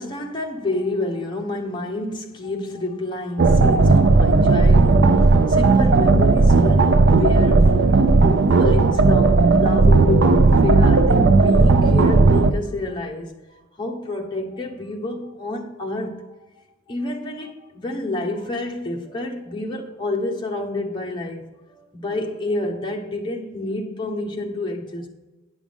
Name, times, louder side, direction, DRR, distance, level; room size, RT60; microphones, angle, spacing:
voice 1, 0.0-16.3 16.9-25.1, left 2 dB, 25° left, 1.2 m, -28 dB
sound 1, 3.4-12.5, right 3 dB, 60° right, 0.5 m, -15 dB
9.5 x 6.2 x 5.3 m
head